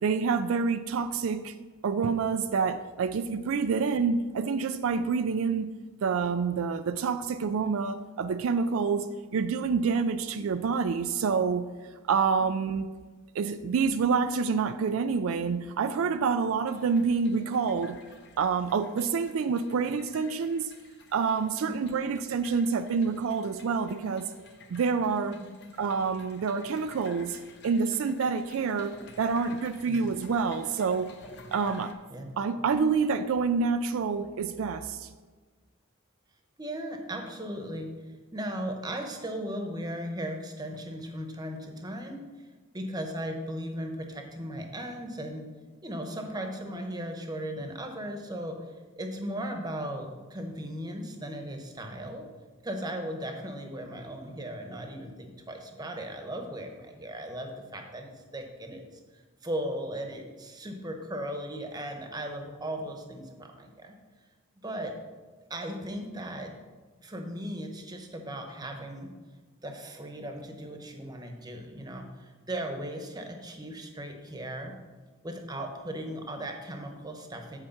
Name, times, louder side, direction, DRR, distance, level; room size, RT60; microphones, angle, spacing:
voice 1, 0.0-1.5 1.8-11.7 12.1-12.9 13.3-18.0 18.4-20.7 21.1-24.3 24.7-25.4 25.8-31.1 31.5-32.0 32.4-35.1, right 5 dB, 70° right, 0.4 m, -27 dB
sound 1, 16.7-31.9, left 3 dB, 55° left, 0.9 m, -52 dB
voice 2, 36.6-37.9 38.3-42.2 42.7-45.5 45.8-48.6 49.0-52.3 52.6-58.8 59.4-63.9 64.6-64.9 65.5-66.5 67.0-69.1 69.6-74.7 75.2-77.6, right 1 dB, 20° right, 1.0 m, -37 dB
8.0 x 4.6 x 7.1 m
head